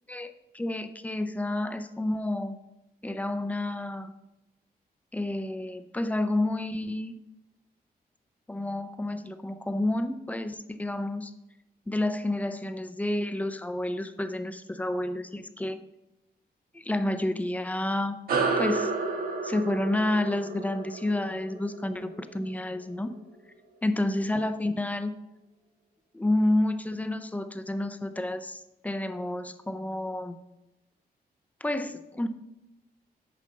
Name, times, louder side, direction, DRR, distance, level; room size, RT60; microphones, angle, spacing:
voice 1, 0.1-2.6 3.0-4.1 5.1-7.1 8.5-11.3 11.9-15.8 16.7-18.2 18.6-18.9 19.4-23.1 23.8-25.1 26.1-30.4 31.6-32.3, left 1 dB, 10° left, 10 dB, 0.4 m, -30 dB
sound 1, 18.3-23.1, right 3 dB, 65° right, 1.3 m, -31 dB
8.6 x 6.4 x 3.8 m, 0.94 s
wide cardioid pair, 175°, 16 cm